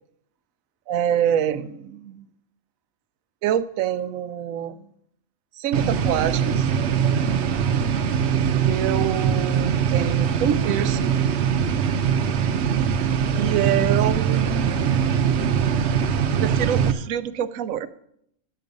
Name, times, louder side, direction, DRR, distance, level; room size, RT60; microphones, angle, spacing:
voice 1, 0.9-2.3 3.4-4.9 5.6-6.7 8.6-11.1 13.3-14.7 16.4-17.9, right 10 dB, 85° right, 13 dB, 1.0 m, -26 dB
sound 1, 5.7-16.9, right 7 dB, 60° right, 0.9 m, -22 dB
10.0 x 7.5 x 5.2 m, 0.71 s
omnidirectional pair, 1.4 m